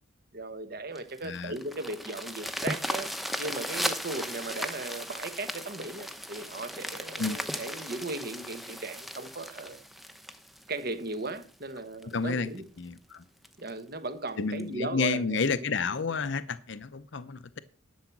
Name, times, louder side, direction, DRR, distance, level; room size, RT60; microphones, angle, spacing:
voice 1, 0.3-3.1 3.4-9.8 10.7-12.7 13.6-15.7, right 2 dB, 50° right, 1.2 m, -37 dB
sound 1, 1.0-11.4 12.0-12.1 12.5-12.6 13.0-13.1 13.4-13.7 14.6-14.7, equal, ahead, 0.9 m, -36 dB
voice 2, 1.2-1.6 7.2-7.4 12.0-12.5 12.8-13.2 14.4-17.6, left 4 dB, 60° left, 0.6 m, -30 dB
11.5 x 7.1 x 5.9 m
head